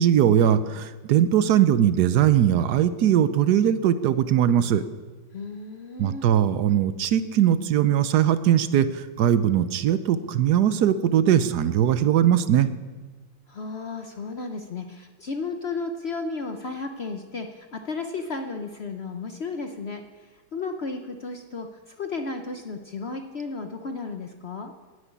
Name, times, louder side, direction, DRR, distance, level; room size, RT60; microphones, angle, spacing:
voice 1, 0.0-4.8 6.0-12.7, right 10 dB, 70° right, 13 dB, 1.1 m, -20 dB
voice 2, 5.3-6.2 13.5-24.7, left 4 dB, 60° left, 5 dB, 0.7 m, -34 dB
10.0 x 9.7 x 9.6 m, 1.3 s
omnidirectional pair, 2.1 m